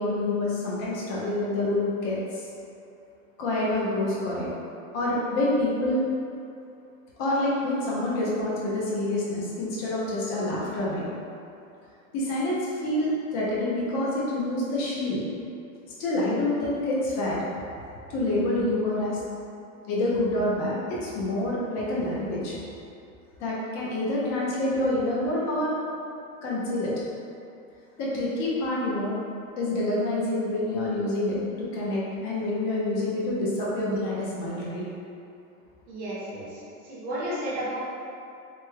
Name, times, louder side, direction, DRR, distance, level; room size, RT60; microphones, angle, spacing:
voice 1, 0.0-2.5 3.4-4.5 4.9-6.0 7.2-11.1 12.1-15.2 16.0-17.4 18.1-19.2 19.9-22.6 23.4-25.7 26.4-26.9 28.0-29.1 29.6-34.8, left 1 dB, 25° left, -6 dB, 0.5 m, -27 dB
voice 2, 35.9-37.8, right 1 dB, 20° right, -8 dB, 0.6 m, -33 dB
3.4 x 2.1 x 3.2 m, 2.6 s
supercardioid pair, 155°, 44 cm